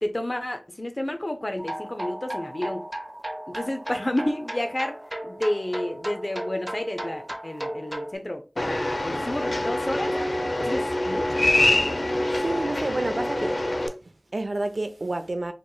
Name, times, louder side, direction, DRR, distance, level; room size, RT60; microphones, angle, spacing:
voice 1, 0.0-2.8 3.5-5.0 5.2-10.1 10.6-11.6, left 1 dB, 45° left, 0.5 m, -30 dB
sound 1, 1.6-8.1, right 1 dB, 25° right, 0.6 m, -35 dB
sound 2, 8.6-13.9, left 1 dB, 85° left, 0.7 m, -25 dB
voice 2, 12.3-13.6 14.0-15.5, right 2 dB, 80° right, 0.5 m, -30 dB
4.9 x 3.0 x 2.3 m
wide cardioid pair, 40°, 0 cm